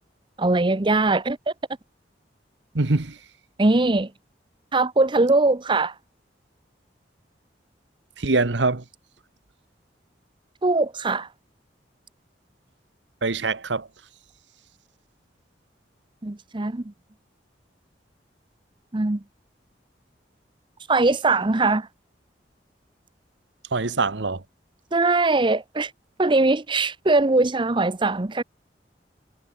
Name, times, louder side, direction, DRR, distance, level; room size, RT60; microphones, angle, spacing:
voice 1, 0.4-1.5 3.6-4.1 4.7-5.9 10.6-11.3 16.2-16.8 18.9-19.2 20.9-21.9 24.9-25.9 26.2-28.4, right 2 dB, 25° right, 0.8 m, -21 dB
voice 2, 2.7-3.2 8.2-8.8 13.2-13.9 23.7-24.4, right 3 dB, 80° right, 1.3 m, -23 dB
head